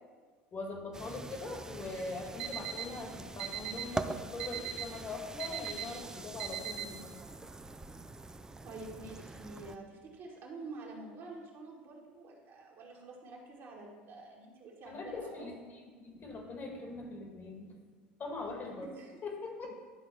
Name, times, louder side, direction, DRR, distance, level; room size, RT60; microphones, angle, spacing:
voice 1, 0.5-7.2 14.8-17.7 18.2-18.9 19.2-19.7, left 3 dB, 35° left, 1 dB, 1.8 m, -42 dB
sound 1, 0.9-9.8, right 2 dB, 10° right, 0.4 m, -44 dB
Alarm, 2.4-2.8 3.4-3.8 4.4-4.8 5.4-5.8 6.4-6.8, right 12 dB, 75° right, 0.5 m, -37 dB
voice 2, 8.6-15.5 18.8-19.2, right 3 dB, 50° right, -3 dB, 1.6 m, -48 dB
11.0 x 3.7 x 4.5 m, 1.5 s
hypercardioid pair, 90°, 5 cm